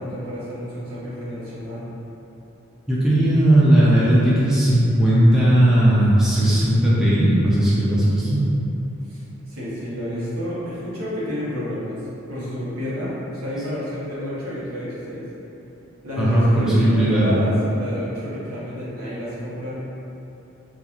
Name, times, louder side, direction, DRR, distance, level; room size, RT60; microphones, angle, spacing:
voice 1, 0.0-1.9 9.0-12.0 12.3-15.3 16.0-19.8, equal, 85° right, -9 dB, 0.8 m, -30 dB
voice 2, 2.9-8.5 16.2-17.4, right 1 dB, 5° right, -10 dB, 0.4 m, -17 dB
2.9 x 2.3 x 2.4 m, 3.0 s
head